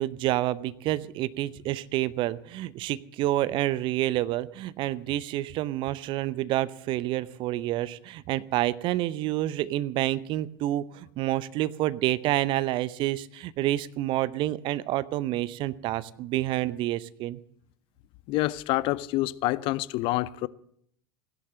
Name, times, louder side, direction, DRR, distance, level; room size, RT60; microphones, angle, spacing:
voice 1, 0.0-17.4, right 15 dB, 45° right, 0.7 m, -28 dB
voice 2, 18.3-20.5, left 18 dB, 45° left, 0.6 m, -27 dB
16.0 x 11.0 x 7.5 m
figure-of-eight pair, 80°, 12 cm